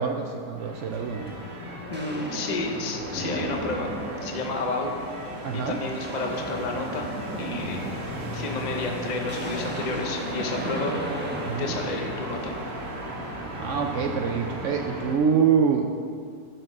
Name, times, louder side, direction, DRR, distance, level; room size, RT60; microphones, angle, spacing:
voice 1, 0.0-1.4 5.4-5.8 11.4-11.8 13.6-15.9, right 6 dB, 80° right, 4 dB, 0.6 m, -25 dB
sound 1, 0.6-15.2, right 1 dB, 50° right, 1.9 m, -36 dB
voice 2, 1.9-3.9 4.2-4.9 5.5-7.1 7.4-7.8 8.3-10.9 11.6-12.5, left 3 dB, 45° left, 2 dB, 0.5 m, -31 dB
sound 2, 1.9-4.8 5.2-5.5 5.8-12.9, right 1 dB, 10° right, 0.6 m, -36 dB
11.0 x 4.6 x 6.0 m, 2.2 s
omnidirectional pair, 1.9 m